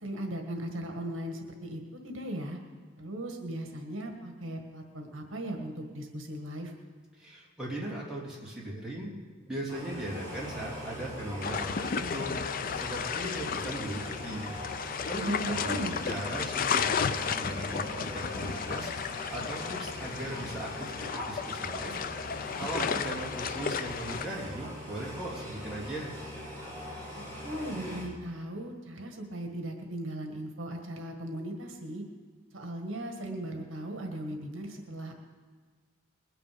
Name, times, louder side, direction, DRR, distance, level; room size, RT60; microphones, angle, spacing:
voice 1, 0.0-2.6 3.0-6.7 15.1-16.0 27.1-32.0 32.5-35.1, right 1 dB, 70° right, 3 dB, 1.7 m, -37 dB
voice 2, 7.2-9.1 9.5-12.3 12.7-14.5 15.0-18.9 19.3-20.9 21.2-21.9 22.3-26.1, right 1 dB, 5° right, -6 dB, 2.8 m, -38 dB
sound 1, 9.7-28.0, left 1 dB, 15° left, 5.7 m, -41 dB
sound 2, 11.4-24.3, left 6 dB, 40° left, 0.4 m, -34 dB
20.5 x 10.0 x 5.1 m, 1.5 s
head